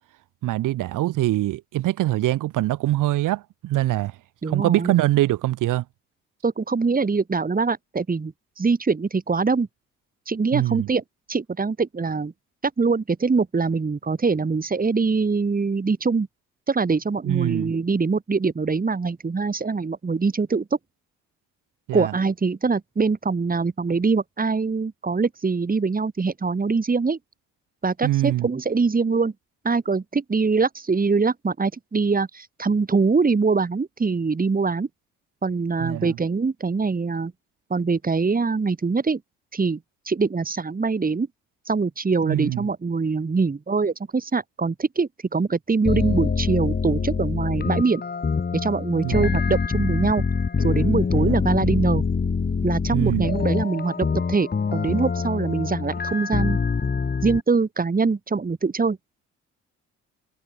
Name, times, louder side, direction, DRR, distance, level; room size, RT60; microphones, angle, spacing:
voice 1, 0.4-4.2 4.5-5.8 10.5-10.9 17.2-17.7 21.9-22.1 28.0-28.5 35.8-36.2 42.2-42.7 49.0-49.3 51.3-51.4 52.9-53.3, right 15 dB, 70° right, 2.0 m, -23 dB
voice 2, 4.4-5.0 6.4-9.7 10.3-11.0 11.3-12.3 12.8-16.3 16.7-20.7 21.9-27.2 27.8-29.3 29.6-34.9 35.4-37.3 37.7-39.2 39.5-39.8 40.1-41.3 41.7-48.0 48.6-50.2 50.6-52.0 52.6-56.6 57.2-59.0, right 4 dB, 25° right, 2.5 m, -23 dB
sound 1, 45.8-57.4, left 5 dB, 30° left, 1.6 m, -25 dB
hypercardioid pair, 55°, 33 cm